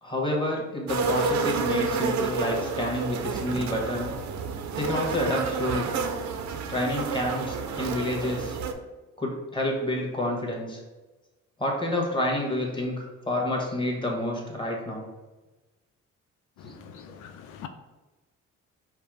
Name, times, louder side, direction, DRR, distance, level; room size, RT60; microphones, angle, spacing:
voice 1, 0.0-4.1 4.7-5.9 6.7-8.6 9.2-10.8 11.6-15.1 16.6-16.8, left 1 dB, 15° left, 1.3 m, -29 dB
sound 1, 0.9-8.7, right 5 dB, 70° right, 0.6 m, -30 dB
voice 2, 16.6-17.7, left 9 dB, 85° left, 0.5 m, -44 dB
4.8 x 2.2 x 4.8 m
cardioid pair, 90°, 30 cm